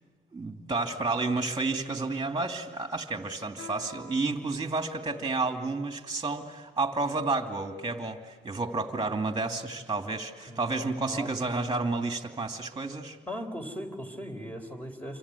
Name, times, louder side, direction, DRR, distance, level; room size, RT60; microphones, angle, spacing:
voice 1, 0.3-13.2, right 3 dB, 20° right, 5 dB, 2.6 m, -31 dB
Guitar, 3.5-6.0, left 5 dB, 70° left, 4.9 m, -50 dB
voice 2, 10.5-11.4 13.3-15.2, equal, 10° left, 4 dB, 4.1 m, -39 dB
27.5 x 25.0 x 8.5 m, 1.5 s
cardioid pair, 90°, 20 cm